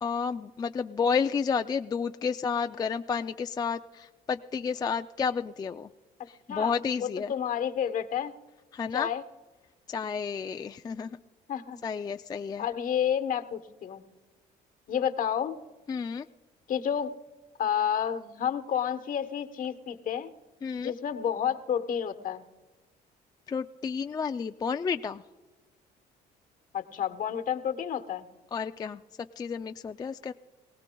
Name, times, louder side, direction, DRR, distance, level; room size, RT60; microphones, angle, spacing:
voice 1, 0.0-5.9 6.3-7.3 8.7-9.1 9.9-11.2 11.8-12.7 15.9-16.3 20.6-20.9 23.5-25.2 28.5-30.3, left 6 dB, 25° left, 8 dB, 0.3 m, -31 dB
voice 2, 7.0-8.3 8.9-9.2 11.5-11.8 12.6-14.0 14.9-15.6 16.7-17.1 17.6-20.3 20.8-22.4 26.7-28.3, left 8 dB, 55° left, 8 dB, 1.1 m, -30 dB
23.5 x 17.5 x 2.3 m, 1.2 s
cardioid pair, 110°, 17 cm